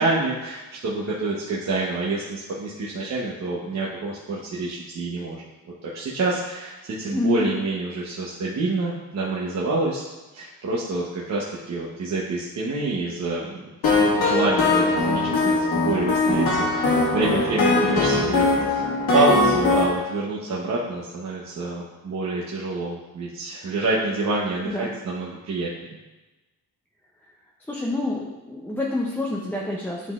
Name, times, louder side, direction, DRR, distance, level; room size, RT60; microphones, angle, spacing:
voice 1, 0.0-5.4 5.8-10.0 10.3-13.7 14.2-18.9 19.1-25.9, right 3 dB, 45° right, -5 dB, 0.9 m, -27 dB
voice 2, 7.1-7.4 24.6-24.9 27.7-30.1, left 2 dB, 5° left, -3 dB, 0.5 m, -27 dB
sound 1, 13.8-19.8, left 3 dB, 75° left, 1.9 m, -21 dB
10.5 x 3.8 x 2.4 m, 1.1 s
cardioid pair, 125°, 37 cm